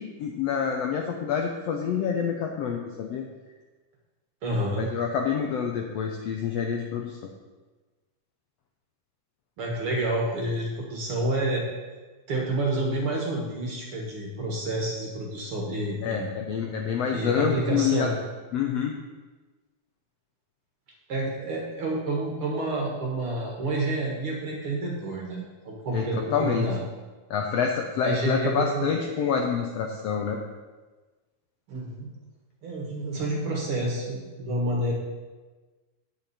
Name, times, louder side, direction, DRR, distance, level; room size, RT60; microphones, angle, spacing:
voice 1, 0.0-3.2 4.8-7.3 16.0-18.1 18.5-18.9 25.9-26.7 27.3-30.4, left 7 dB, 75° left, 2 dB, 1.5 m, -27 dB
voice 2, 4.4-4.9 9.6-11.6 12.3-16.3 17.1-18.2 21.1-26.8 28.0-28.9 31.7-32.1 32.6-34.9, right 1 dB, 50° right, -1 dB, 2.1 m, -29 dB
9.0 x 9.0 x 4.2 m, 1.3 s
omnidirectional pair, 3.7 m